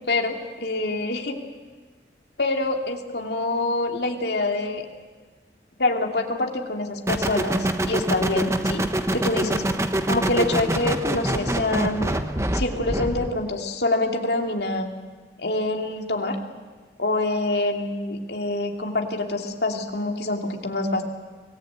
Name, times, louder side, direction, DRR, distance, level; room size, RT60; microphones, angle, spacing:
voice 1, 0.0-1.4 2.4-4.9 5.8-8.9 9.1-9.6 10.1-12.2 12.5-14.9 15.4-16.4 17.0-21.0, left 2 dB, 70° left, 3 dB, 2.7 m, -26 dB
sound 1, 7.1-13.4, right 1 dB, 15° right, 1.1 m, -25 dB
25.0 x 19.0 x 8.9 m, 1.4 s
head